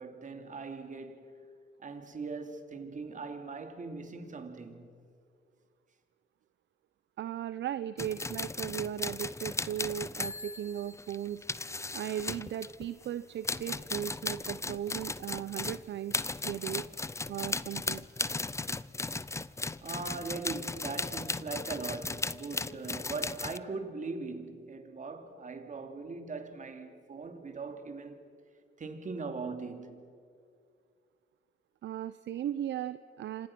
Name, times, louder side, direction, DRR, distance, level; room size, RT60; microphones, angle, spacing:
voice 1, 0.0-1.3 1.8-4.9 19.8-28.3 28.8-30.1, right 4 dB, 40° right, 2.8 m, -40 dB
voice 2, 7.2-11.4 11.9-16.2 16.4-16.8 17.3-18.0 31.8-33.5, right 11 dB, 65° right, 0.7 m, -37 dB
sound 1, 8.0-13.1 13.4-23.6, left 3 dB, 15° left, 0.6 m, -36 dB
28.0 x 26.0 x 6.1 m
cardioid pair, 90°, 20 cm